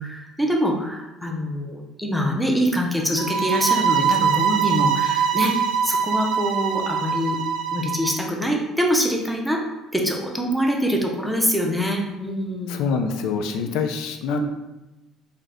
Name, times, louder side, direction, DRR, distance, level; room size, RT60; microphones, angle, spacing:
voice 1, 0.0-5.5 5.8-7.4 7.7-9.6 9.9-12.9 14.3-14.5, equal, ahead, 0 dB, 0.5 m, -24 dB
sound 1, 3.2-8.2, right 7 dB, 90° right, 0.5 m, -23 dB
voice 2, 12.7-14.5, left 5 dB, 80° left, 5 dB, 0.4 m, -26 dB
3.8 x 2.7 x 3.3 m, 1.0 s
cardioid pair, 165°, 0 cm